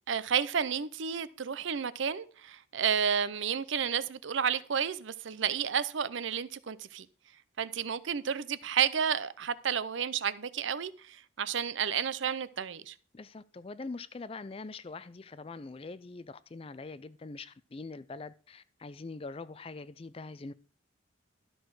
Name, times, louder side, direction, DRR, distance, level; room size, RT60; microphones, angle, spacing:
voice 1, 0.1-7.1 7.6-12.9, right 7 dB, 70° right, 0.6 m, -31 dB
voice 2, 13.1-20.5, left 3 dB, 30° left, 0.4 m, -43 dB
12.5 x 6.3 x 4.7 m
head